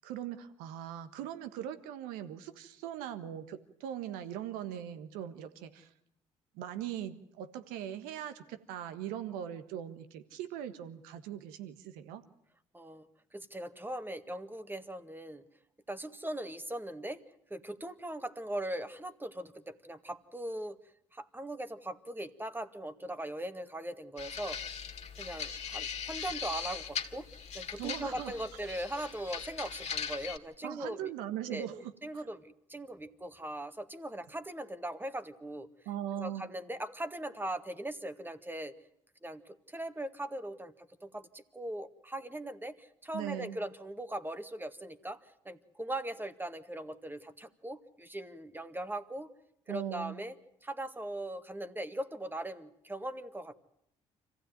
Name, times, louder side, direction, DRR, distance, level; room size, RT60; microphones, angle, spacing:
voice 1, 0.0-5.9 6.5-12.2 27.8-28.3 30.6-32.2 35.8-36.5 43.1-43.6 49.7-50.2, right 10 dB, 85° right, 11 dB, 1.5 m, -40 dB
voice 2, 12.7-13.1 13.3-15.4 15.9-17.2 17.5-20.8 21.1-24.6 25.2-27.3 27.5-31.1 31.5-31.7 32.0-35.7 36.2-38.7 39.2-49.3 49.7-50.3 50.6-53.5, right 1 dB, 15° right, 10 dB, 1.8 m, -40 dB
sound 1, 24.2-30.4, left 7 dB, 50° left, 2.3 m, -40 dB
25.5 x 15.5 x 9.3 m, 0.73 s
hypercardioid pair, 55°, 14 cm